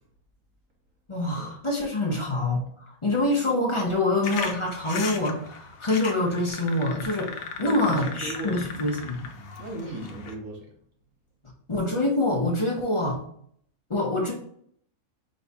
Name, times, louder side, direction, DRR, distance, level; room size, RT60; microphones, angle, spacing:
voice 1, 1.1-2.6 3.0-9.3 11.7-13.2 13.9-14.3, left 2 dB, 30° left, -1 dB, 0.7 m, -25 dB
sound 1, 4.2-10.3, left 5 dB, 75° left, 1.1 m, -37 dB
voice 2, 7.6-8.6 9.6-10.6, right 1 dB, 65° right, 0 dB, 1.5 m, -36 dB
5.2 x 2.4 x 4.0 m, 0.64 s
omnidirectional pair, 1.5 m